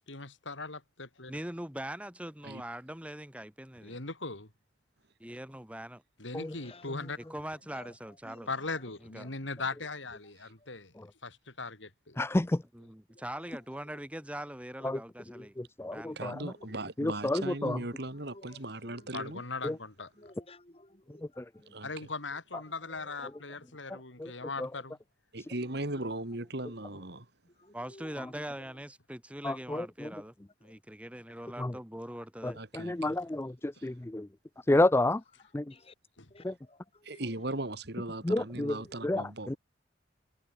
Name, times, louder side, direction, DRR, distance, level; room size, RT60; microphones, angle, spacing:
voice 1, 0.1-1.3 3.8-4.5 6.2-7.2 8.5-10.9 11.2-12.2 19.1-20.1 21.8-25.0 36.2-36.3, left 3 dB, 80° left, 4.1 m, -39 dB
voice 2, 1.3-4.0 5.2-6.0 7.2-8.5 9.0-9.3 12.7-16.2 27.7-30.3 30.6-32.6, right 1 dB, 5° right, 3.0 m, -42 dB
voice 3, 6.5-6.9 7.7-7.9 8.3-8.5 9.2-9.4 16.7-16.8 17.7-17.8 18.3-18.6 20.2-21.4 22.9-23.3 27.6-28.1 34.7-34.8 35.6-35.9 36.3-36.8 37.1-37.2 38.9-39.0, left 2 dB, 30° left, 5.7 m, -54 dB
voice 4, 12.2-12.6 14.8-15.0 15.6-16.5 17.0-17.8 19.6-19.8 21.4-21.5 24.6-24.7 29.4-30.1 31.6-31.7 32.4-34.3 34.7-35.2 35.5-35.7 36.4-36.5 38.2-38.8 39.0-39.5, left 1 dB, 15° left, 0.4 m, -30 dB
voice 5, 16.2-19.4 21.7-22.1 25.3-27.3 32.5-33.1 33.8-33.9 37.0-39.6, right 2 dB, 60° right, 2.4 m, -38 dB
head